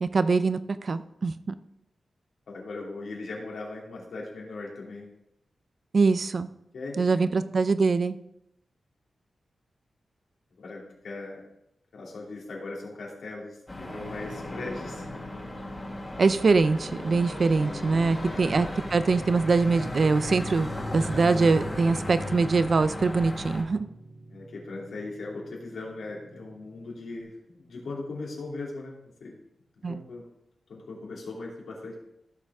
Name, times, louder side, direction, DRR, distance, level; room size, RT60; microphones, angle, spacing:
voice 1, 0.0-1.5 5.9-6.5 7.0-8.2 16.2-23.8 29.8-30.0, right 4 dB, 45° right, 12 dB, 0.5 m, -23 dB
voice 2, 2.5-5.1 6.7-7.4 10.6-11.4 11.9-15.2 17.6-17.8 18.0-18.4 24.3-29.4 29.8-30.3 30.7-32.0, left 3 dB, 80° left, -2 dB, 3.1 m, -39 dB
sound 1, 13.7-23.6, left 1 dB, 20° left, 1.9 m, -36 dB
Piano, 13.9-27.2, right 1 dB, 70° right, 3.3 m, -47 dB
15.5 x 6.8 x 3.6 m, 0.81 s
wide cardioid pair, 135°, 0 cm